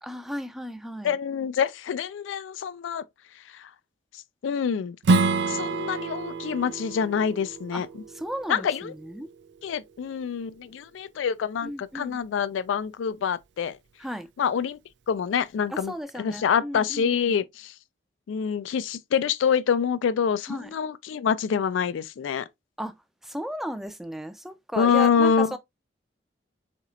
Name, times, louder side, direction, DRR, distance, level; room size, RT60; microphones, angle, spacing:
voice 1, 0.0-1.1 7.7-7.8 8.2-9.3 11.6-12.2 14.0-14.3 15.9-17.2 20.5-20.7 22.8-22.9 23.2-25.6, equal, ahead, 0.3 m, -35 dB
voice 2, 1.0-3.0 3.3-3.7 4.1-5.0 5.5-8.0 8.5-8.9 9.6-13.8 14.4-14.8 15.1-17.7 18.3-22.5 24.8-25.6, left 7 dB, 90° left, 0.3 m, -26 dB
Strum, 5.0-10.2, right 3 dB, 70° right, 0.4 m, -28 dB
4.3 x 4.0 x 2.4 m
head